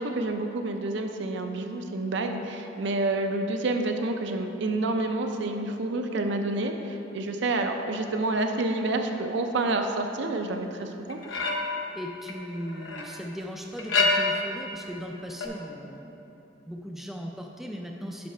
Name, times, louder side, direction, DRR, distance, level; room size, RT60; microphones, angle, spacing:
voice 1, 0.0-11.2, right 2 dB, 60° right, 5 dB, 0.5 m, -28 dB
sound 1, 11.1-11.9 12.3-13.1 13.8-14.6 15.4-15.5, left 3 dB, 70° left, 0.7 m, -27 dB
voice 2, 11.9-16.4 16.7-18.3, equal, ahead, 0 dB, 0.3 m, -38 dB
5.6 x 5.2 x 5.5 m, 3.0 s
head